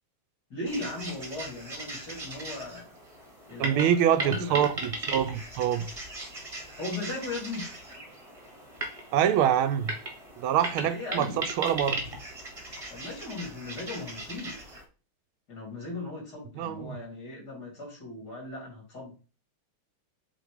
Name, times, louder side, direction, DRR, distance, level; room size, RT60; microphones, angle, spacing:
voice 1, 0.5-2.9 3.5-4.7 6.8-7.7 10.7-11.4 12.9-14.5 15.5-19.1, left 2 dB, 45° left, 3.6 m, -37 dB
sound 1, 0.7-14.8, right 2 dB, 20° right, 1.1 m, -38 dB
voice 2, 3.6-5.9 9.1-9.9 10.4-12.0 16.6-17.0, right 9 dB, 80° right, 1.5 m, -25 dB
7.6 x 2.9 x 5.0 m
omnidirectional pair, 2.4 m